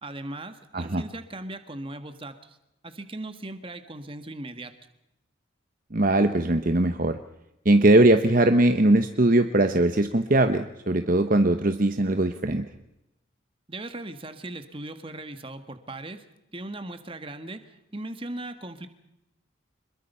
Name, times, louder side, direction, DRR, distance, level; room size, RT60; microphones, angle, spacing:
voice 1, 0.0-2.6 2.8-4.7 13.7-16.2 16.5-17.6 17.9-18.9, right 2 dB, 25° right, 9 dB, 1.7 m, -38 dB
voice 2, 5.9-7.2 7.6-12.6, right 1 dB, 45° right, 8 dB, 1.0 m, -20 dB
26.5 x 22.0 x 5.6 m, 0.87 s
head